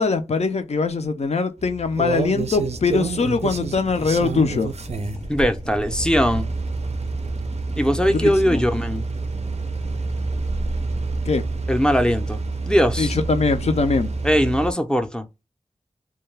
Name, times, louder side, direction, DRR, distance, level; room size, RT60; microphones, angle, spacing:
voice 1, 0.0-4.7 8.2-8.6 11.3-11.4 13.0-14.1, left 4 dB, 60° left, 0.5 m, -22 dB
sound 1, 1.6-14.7, right 4 dB, 60° right, 0.4 m, -28 dB
Drill, 2.5-14.5, left 1 dB, 80° left, 1.0 m, -39 dB
voice 2, 5.3-6.5 7.8-9.0 11.7-12.4 12.7-13.2 14.2-15.3, equal, 5° left, 0.5 m, -20 dB
2.3 x 2.2 x 3.1 m
wide cardioid pair, 50°, 12 cm